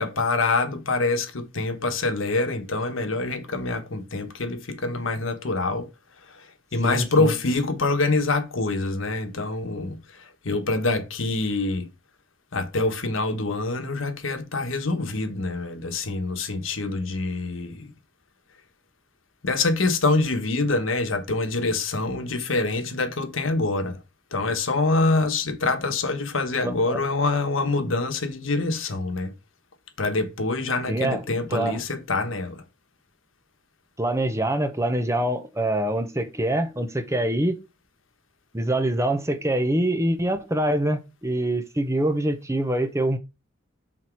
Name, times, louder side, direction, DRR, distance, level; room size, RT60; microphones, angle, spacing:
voice 1, 0.0-5.9 6.3-6.4 6.7-11.9 12.5-17.9 19.4-24.0 24.3-29.3 30.0-32.6, left 3 dB, 85° left, 1.2 m, -25 dB
voice 2, 6.8-7.3 26.6-27.0 30.9-31.2 31.5-31.8 34.0-37.6 38.5-43.2, right 1 dB, 15° right, 0.8 m, -25 dB
6.1 x 4.2 x 4.6 m
head